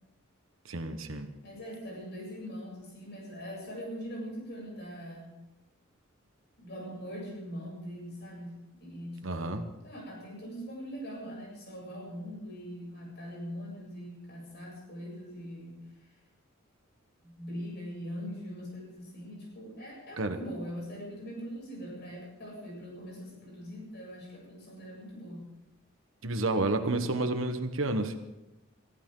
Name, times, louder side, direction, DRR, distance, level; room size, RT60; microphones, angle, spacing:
voice 1, 0.6-1.3 9.2-9.6 20.2-20.4 26.2-28.2, right 2 dB, 70° right, 7 dB, 1.3 m, -30 dB
voice 2, 1.4-5.4 6.6-15.8 17.2-25.5, equal, 55° left, -2 dB, 7.6 m, -42 dB
23.0 x 15.0 x 3.9 m, 0.99 s
head